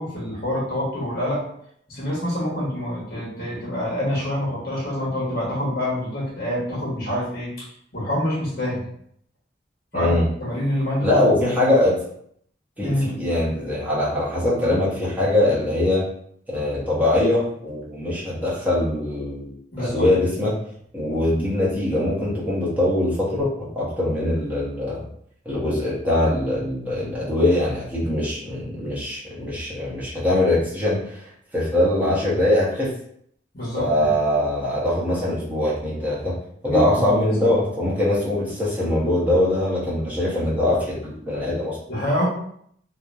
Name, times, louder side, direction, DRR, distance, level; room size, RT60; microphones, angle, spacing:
voice 1, 0.0-1.4 1.9-8.8 9.9-10.1 10.4-11.3 12.8-13.1 19.7-20.1 33.5-34.1 36.7-37.3 41.9-42.3, equal, 50° left, -4 dB, 1.0 m, -26 dB
voice 2, 9.9-10.2 11.0-12.0 12.8-16.0 16.5-20.5 20.9-25.0 25.4-32.9 33.8-36.3 36.6-41.8, left 1 dB, 10° right, -8 dB, 0.7 m, -22 dB
2.8 x 2.0 x 2.3 m, 0.67 s
head